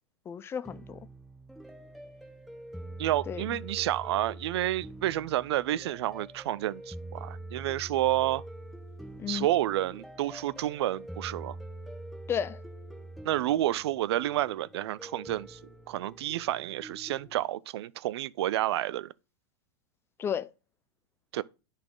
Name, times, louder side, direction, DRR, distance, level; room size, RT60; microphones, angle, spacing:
voice 1, 0.3-1.0 3.3-3.6 9.2-9.5 12.3-12.6 20.2-20.5, left 8 dB, 15° left, 0.4 m, -33 dB
sound 1, 0.6-17.4, right 1 dB, ahead, 1.3 m, -45 dB
voice 2, 3.0-8.4 9.3-11.6 13.2-15.6 15.9-19.1 21.3-21.4, right 14 dB, 70° right, 0.4 m, -30 dB
10.5 x 4.2 x 3.8 m
hypercardioid pair, 130°, 14 cm